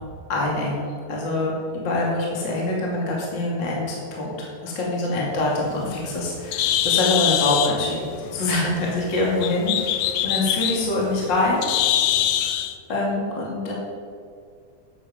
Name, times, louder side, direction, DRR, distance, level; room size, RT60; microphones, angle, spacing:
voice 1, 0.3-11.7 12.4-12.6 12.9-13.7, left 2 dB, 35° left, -4 dB, 2.7 m, -25 dB
Bird, 5.5-12.7, left 11 dB, 80° left, 1.7 m, -24 dB
13.0 x 11.0 x 5.1 m, 2.2 s
omnidirectional pair, 3.7 m